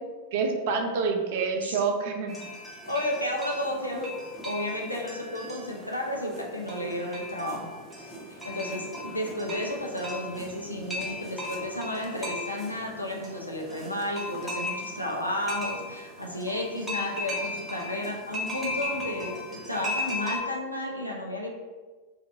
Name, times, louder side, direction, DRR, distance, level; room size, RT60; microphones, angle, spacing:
voice 1, 0.3-2.3, right 5 dB, 50° right, 4 dB, 0.4 m, -27 dB
sound 1, 2.3-20.4, left 2 dB, 5° left, 0.8 m, -37 dB
voice 2, 2.8-4.1 4.4-7.7 8.0-21.5, left 1 dB, 85° left, -1 dB, 0.5 m, -32 dB
2.8 x 2.4 x 3.3 m, 1.3 s
figure-of-eight pair, 90°, 0 cm